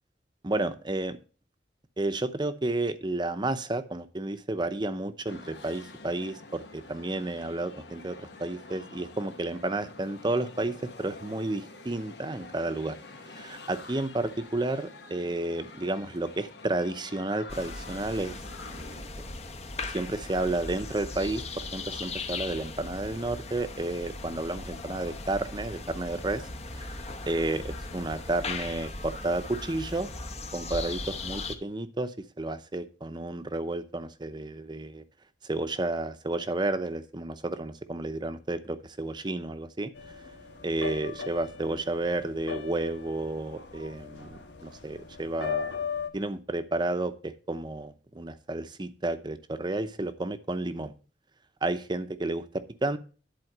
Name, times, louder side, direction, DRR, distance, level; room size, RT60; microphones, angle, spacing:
voice 1, 0.4-1.2 2.0-13.0 13.3-18.4 18.7-19.3 19.9-21.4 21.7-26.4 26.7-26.9 27.3-30.1 30.5-35.0 35.5-39.9 40.6-45.7 46.1-50.9 51.6-52.4 52.8-53.0, right 2 dB, 25° right, 11 dB, 0.7 m, -31 dB
sound 1, 5.3-19.0, left 3 dB, 70° left, 1.4 m, -47 dB
sound 2, 17.5-31.6, left 3 dB, 40° left, 1.0 m, -38 dB
sound 3, 39.9-46.1, left 6 dB, 90° left, 1.5 m, -38 dB
11.0 x 4.3 x 7.2 m, 0.37 s
head